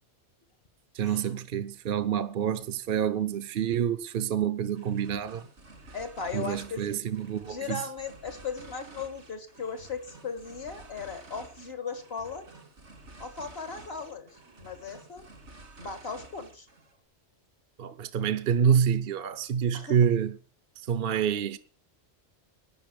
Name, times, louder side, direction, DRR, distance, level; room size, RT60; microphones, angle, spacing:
voice 1, 0.9-5.4 6.3-7.8 17.8-20.4 20.9-21.6, right 8 dB, 60° right, 0.9 m, -27 dB
sound 1, 4.7-17.0, right 2 dB, 90° right, 2.8 m, -51 dB
voice 2, 5.9-7.0 7.4-12.5 13.2-15.3 15.8-16.7 19.7-20.0, left 5 dB, 60° left, 2.0 m, -37 dB
12.0 x 9.6 x 6.8 m
omnidirectional pair, 1.2 m